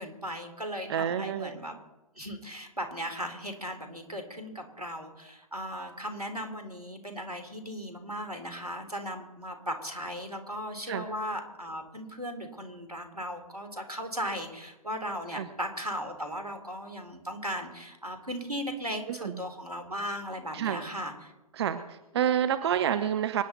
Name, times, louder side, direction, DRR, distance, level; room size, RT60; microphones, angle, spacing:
voice 1, 0.0-1.8 2.2-21.3, equal, 85° right, 6 dB, 3.2 m, -37 dB
voice 2, 0.9-1.6 10.9-11.0 15.3-15.5 19.1-19.4 20.5-20.8 21.5-23.4, right 9 dB, 45° right, 10 dB, 0.8 m, -29 dB
25.5 x 11.0 x 4.0 m, 1.0 s
figure-of-eight pair, 125°, 19 cm